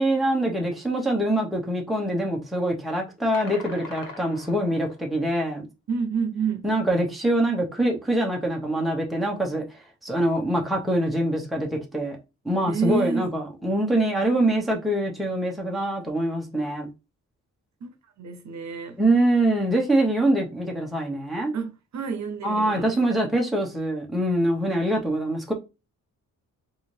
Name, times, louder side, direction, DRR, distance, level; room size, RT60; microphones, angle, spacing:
voice 1, 0.0-5.7 6.6-9.6 10.0-12.2 12.4-16.9 19.0-21.5 22.4-25.5, right 1 dB, ahead, 0.9 m, -24 dB
sound 1, 3.3-5.1, left 3 dB, 85° left, 1.2 m, -41 dB
voice 2, 5.9-6.6 12.7-13.3 17.8-19.0 21.5-22.9, right 5 dB, 55° right, 0.8 m, -29 dB
3.9 x 2.6 x 3.3 m
wide cardioid pair, 125°, 33 cm